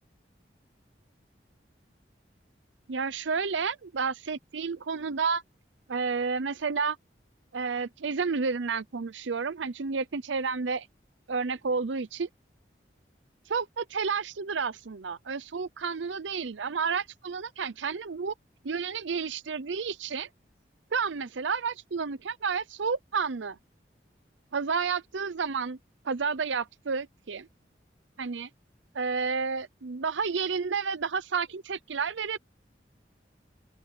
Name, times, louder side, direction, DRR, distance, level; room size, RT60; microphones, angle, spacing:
voice 1, 2.9-5.4 5.9-7.0 7.5-10.9 11.3-12.3 13.5-18.3 18.6-20.3 20.9-23.6 24.5-25.8 26.0-27.5 28.2-28.5 28.9-32.4, right 5 dB, 90° right, 0.7 m, -31 dB
open air
head